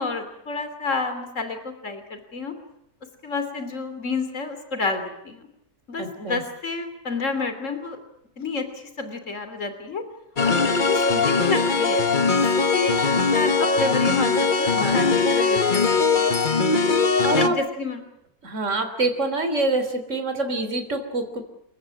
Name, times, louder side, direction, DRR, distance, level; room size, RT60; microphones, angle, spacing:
voice 1, 0.0-2.5 3.2-5.5 5.9-8.0 8.4-8.7 9.0-10.0 10.5-12.0 12.4-13.0 13.3-15.8 16.1-16.3 17.3-18.1, left 3 dB, 50° left, 9 dB, 3.4 m, -29 dB
voice 2, 6.0-6.4 14.8-15.2 17.2-17.6 18.4-21.4, right 2 dB, 50° right, 7 dB, 3.9 m, -26 dB
sound 1, 10.4-17.5, left 4 dB, 35° left, 1.4 m, -20 dB
29.5 x 15.5 x 9.8 m, 0.79 s
omnidirectional pair, 1.6 m